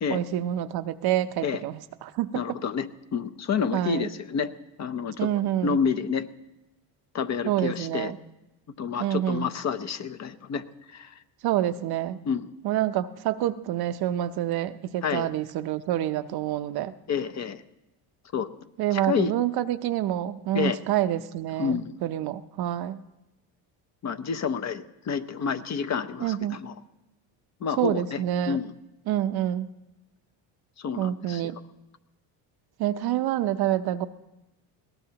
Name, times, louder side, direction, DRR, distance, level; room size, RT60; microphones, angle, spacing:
voice 1, 0.1-2.6 3.7-4.1 5.2-5.8 7.4-8.2 9.0-9.5 11.4-12.2 12.6-16.9 18.8-23.0 26.2-26.6 27.8-28.6 29.1-29.7 31.0-31.6 32.8-34.1, right 12 dB, 55° right, 11 dB, 0.7 m, -27 dB
voice 2, 2.3-4.5 4.8-5.3 5.6-6.3 7.1-8.1 8.8-11.1 12.2-12.5 15.0-15.3 17.1-17.6 18.3-18.5 18.9-19.3 20.5-20.8 21.6-22.0 24.0-26.7 27.6-28.7 30.8-31.4, left 6 dB, 35° left, 10 dB, 0.7 m, -29 dB
20.5 x 17.5 x 2.9 m, 0.96 s
cardioid pair, 110°, 46 cm